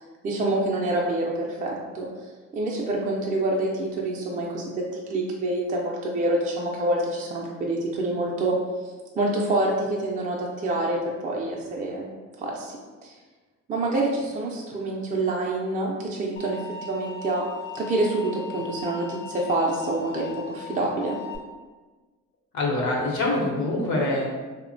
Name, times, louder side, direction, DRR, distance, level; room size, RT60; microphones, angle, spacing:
voice 1, 0.2-2.1 2.5-4.7 5.1-8.6 9.1-12.1 12.4-12.8 13.0-13.1 13.7-16.6 16.9-17.5 17.7-21.2, right 2 dB, 25° right, -2 dB, 0.4 m, -26 dB
sound 1, 16.4-21.4, left 5 dB, 30° left, 0.5 m, -39 dB
voice 2, 22.5-24.3, left 2 dB, 70° left, -2 dB, 0.8 m, -24 dB
2.7 x 2.1 x 2.6 m, 1.3 s
cardioid pair, 90°, 30 cm